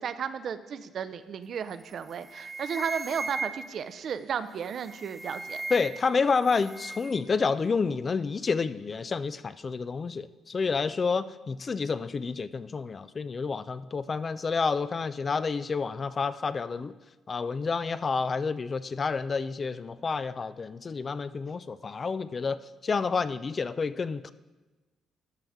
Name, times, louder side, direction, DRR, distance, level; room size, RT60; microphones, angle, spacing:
voice 1, 0.0-5.6, right 7 dB, 60° right, 12 dB, 0.4 m, -34 dB
sound 1, 1.7-1.9 2.2-3.9 4.7-6.2 6.4-7.2, right 2 dB, 20° right, 0.7 m, -38 dB
voice 2, 5.7-16.9 17.3-22.6 22.8-24.3, left 5 dB, 40° left, 14 dB, 0.3 m, -29 dB
12.5 x 5.8 x 3.5 m, 1.2 s
cardioid pair, 90°, 0 cm